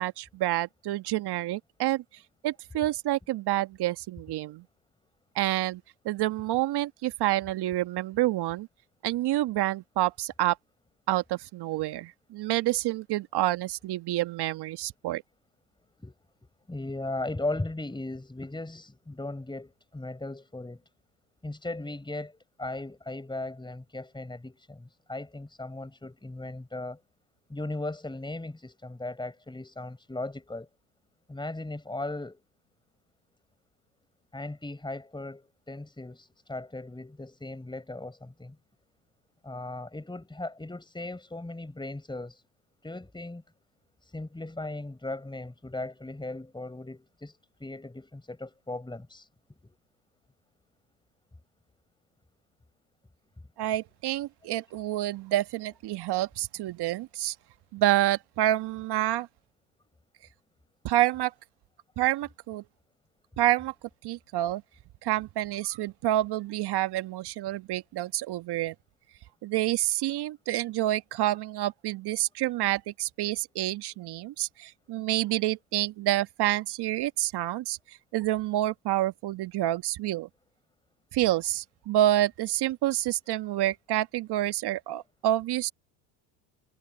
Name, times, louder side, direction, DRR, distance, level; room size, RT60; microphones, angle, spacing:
voice 1, 0.0-2.0 2.4-4.6 5.3-8.7 9.0-10.6 11.1-15.2 53.6-57.3 57.7-59.3 60.8-61.3 62.0-62.6 63.4-63.7 64.0-64.6 65.0-68.7 69.4-77.8 78.1-80.3 81.1-85.7, right 14 dB, 55° right, 1.6 m, -28 dB
voice 2, 16.7-20.8 21.4-27.0 27.5-30.7 31.3-32.4 34.3-38.6 39.4-42.4 42.8-43.4 44.1-49.3 49.6-49.8, left 2 dB, 10° left, 5.9 m, -37 dB
hypercardioid pair, 75°, 47 cm